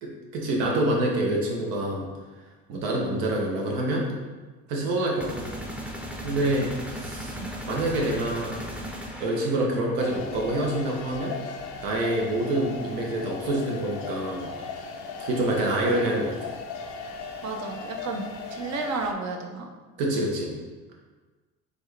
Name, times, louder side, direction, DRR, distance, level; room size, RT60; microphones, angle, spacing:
voice 1, 0.0-2.1 2.7-4.1 4.7-5.5 6.2-7.4 7.7-8.6 9.2-11.4 11.8-14.5 15.2-16.5 20.0-20.5, right 1 dB, 85° right, -1 dB, 1.0 m, -26 dB
sound 1, 5.2-9.9, equal, 5° right, 0.5 m, -37 dB
sound 2, 10.0-19.1, left 4 dB, 70° left, 0.6 m, -37 dB
voice 2, 17.4-19.7, right 3 dB, 60° right, 3 dB, 0.7 m, -32 dB
4.3 x 3.2 x 3.3 m, 1.3 s
cardioid pair, 100°, 32 cm